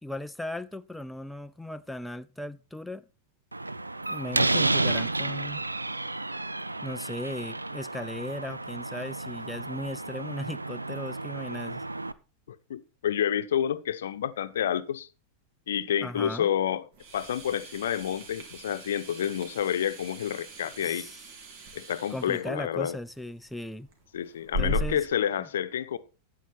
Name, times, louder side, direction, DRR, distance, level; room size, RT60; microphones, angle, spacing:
voice 1, 0.0-3.0 4.1-5.6 6.8-11.8 16.0-16.5 20.8-21.2 22.1-23.9 24.6-25.1 25.4-25.5, left 1 dB, 5° left, 0.5 m, -37 dB
Slam, 3.5-12.1, right 2 dB, 85° right, 0.6 m, -31 dB
voice 2, 12.5-15.1 15.7-16.8 17.1-21.1 21.7-23.0 24.1-26.0, left 9 dB, 60° left, 0.9 m, -29 dB
sound 1, 16.9-25.1, equal, 50° right, 3.6 m, -38 dB
13.5 x 9.1 x 4.4 m
figure-of-eight pair, 90°, 0 cm